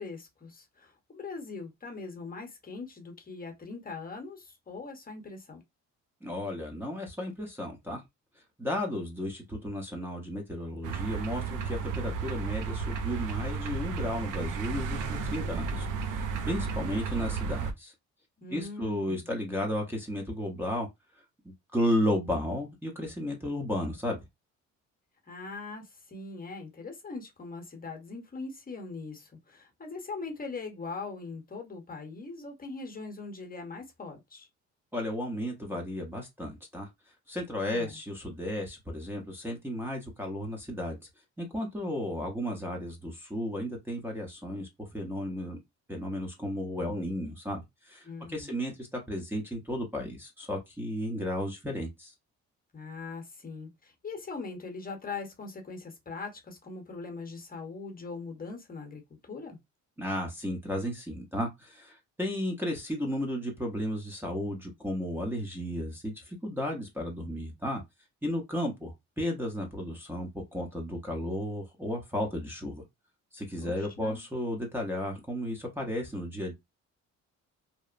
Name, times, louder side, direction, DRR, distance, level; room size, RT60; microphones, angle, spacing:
voice 1, 0.0-5.6 18.4-19.3 25.3-34.5 37.6-38.0 48.0-48.5 52.7-59.6 73.6-74.2, left 4 dB, 30° left, 0.9 m, -41 dB
voice 2, 6.2-8.0 8.6-17.9 18.5-20.9 21.4-24.2 34.9-36.9 37.3-41.0 41.4-45.6 45.9-52.1 60.0-67.8 68.2-72.8 73.3-76.5, left 1 dB, 5° right, 0.7 m, -34 dB
sound 1, 10.8-17.7, right 5 dB, 85° right, 0.5 m, -33 dB
2.9 x 2.0 x 2.4 m
cardioid pair, 90°, 30 cm